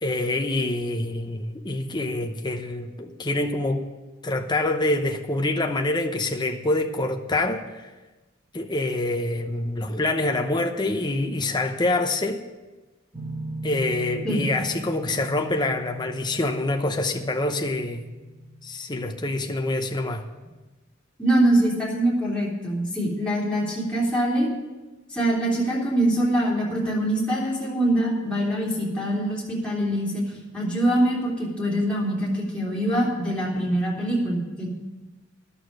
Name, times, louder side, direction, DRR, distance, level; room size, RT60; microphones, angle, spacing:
voice 1, 0.0-3.9 4.2-7.9 8.5-12.4 13.6-18.0 18.6-20.3, left 2 dB, 20° left, 4 dB, 0.8 m, -26 dB
sound 1, 13.1-18.7, right 1 dB, 25° right, 1.6 m, -38 dB
voice 2, 21.2-24.5 25.1-34.7, right 1 dB, 5° left, -6 dB, 3.6 m, -24 dB
11.0 x 7.0 x 9.5 m, 1.2 s
head